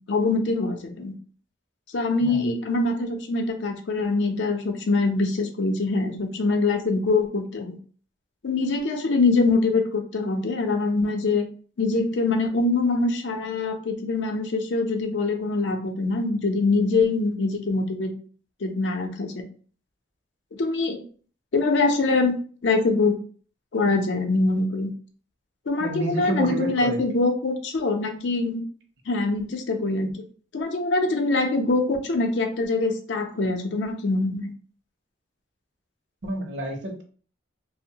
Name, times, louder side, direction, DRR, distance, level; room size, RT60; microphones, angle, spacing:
voice 1, 0.1-1.1 1.9-7.8 8.4-11.5 11.8-18.1 18.6-19.4 20.5-21.0 21.5-22.4 22.6-23.2 23.7-24.9 25.7-28.7 29.1-30.2 30.5-34.5, left 3 dB, 75° left, 5 dB, 0.5 m, -24 dB
voice 2, 2.2-2.5 25.8-27.0 36.2-37.0, right 2 dB, 70° right, 3 dB, 0.6 m, -29 dB
2.9 x 2.1 x 2.6 m, 0.42 s
head